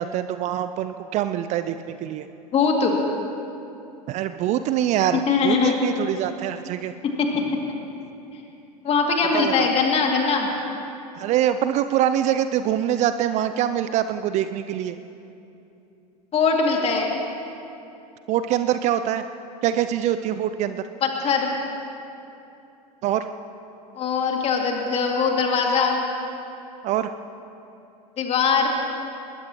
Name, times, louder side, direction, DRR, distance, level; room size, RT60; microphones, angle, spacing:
voice 1, 0.0-2.3 4.1-6.9 9.3-9.7 11.1-15.0 18.3-19.3 19.6-20.8 23.0-23.3 26.8-27.1, right 11 dB, 35° right, 11 dB, 0.5 m, -24 dB
voice 2, 2.5-3.0 5.3-5.7 7.3-7.5 8.8-10.5 16.3-17.1 21.0-21.5 23.9-26.0 28.2-28.7, left 5 dB, 30° left, 0 dB, 2.6 m, -21 dB
21.5 x 20.5 x 3.1 m, 2.8 s
figure-of-eight pair, 85°, 21 cm